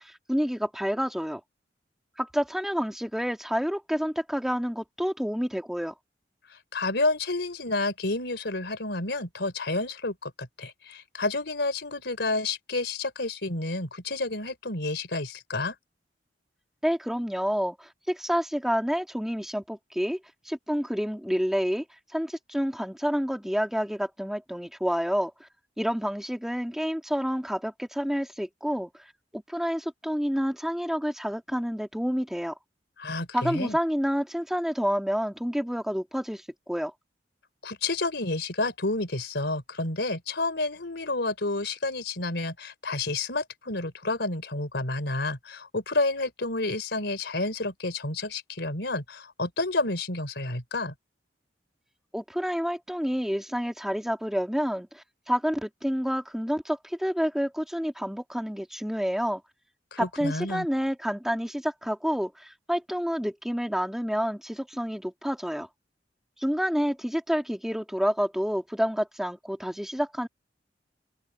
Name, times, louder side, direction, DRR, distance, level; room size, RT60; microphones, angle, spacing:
voice 1, 0.0-1.4 2.2-5.9 16.8-20.2 20.5-21.8 22.1-25.5 25.8-29.1 29.3-32.6 33.3-36.9 52.1-59.4 60.0-65.7 66.4-70.3, equal, ahead, 2.1 m, -29 dB
voice 2, 6.5-15.7 33.0-33.8 37.6-50.9 59.9-60.7, left 2 dB, 70° left, 4.4 m, -30 dB
head